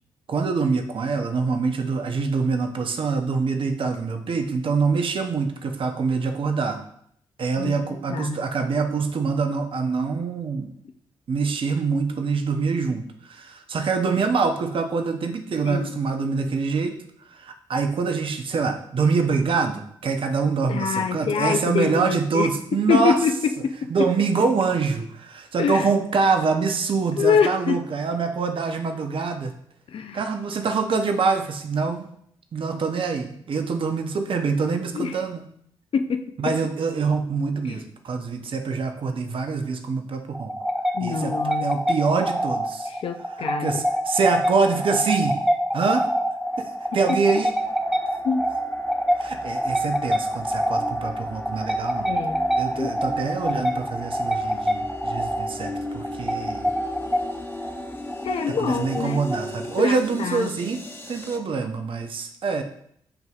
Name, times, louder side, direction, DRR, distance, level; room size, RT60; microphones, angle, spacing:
voice 1, 0.3-6.8 7.4-10.7 11.3-17.0 17.2-23.2 23.9-29.5 30.1-32.1 32.5-35.5 36.4-40.5 41.0-41.3 41.6-42.9 43.4-45.4 45.7-46.1 46.6-47.6 49.2-52.1 52.6-56.7 58.5-62.6, right 4 dB, 45° right, 6 dB, 0.6 m, -25 dB
voice 2, 7.6-8.4 15.6-16.0 20.7-22.5 22.9-23.4 23.6-23.8 25.6-25.9 27.2-27.8 29.9-30.2 34.9-35.2 35.9-36.5 37.7-37.8 40.9-41.8 42.9-43.8 48.2-48.4 52.1-52.4 52.8-53.0 58.2-59.2 59.8-60.5, left 6 dB, 50° left, 7 dB, 0.4 m, -25 dB
sound 1, 40.3-59.7, equal, ahead, 0.6 m, -26 dB
sound 2, 46.4-61.4, left 1 dB, 20° left, 1.0 m, -39 dB
7.7 x 2.6 x 2.4 m, 0.67 s
hypercardioid pair, 40°, 12 cm